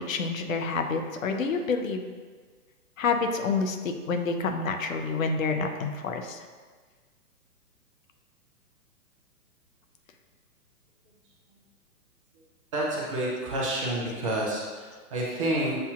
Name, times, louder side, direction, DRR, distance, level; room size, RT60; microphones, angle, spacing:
voice 1, 0.0-2.1 3.0-6.4, left 4 dB, 60° left, 5 dB, 0.6 m, -28 dB
voice 2, 12.7-15.8, right 1 dB, 25° right, -4 dB, 0.5 m, -29 dB
7.5 x 2.7 x 2.4 m, 1.5 s
figure-of-eight pair, 120°, 46 cm